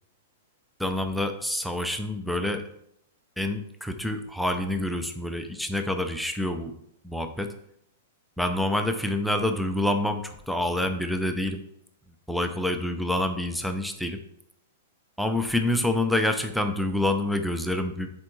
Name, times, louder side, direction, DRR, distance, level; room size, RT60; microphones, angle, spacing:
voice 1, 0.8-2.6 3.4-6.7 7.0-7.5 8.4-11.6 12.3-14.2 15.2-18.1, left 1 dB, ahead, 6 dB, 0.4 m, -27 dB
9.9 x 4.4 x 3.1 m, 0.74 s
supercardioid pair, 165°, 0 cm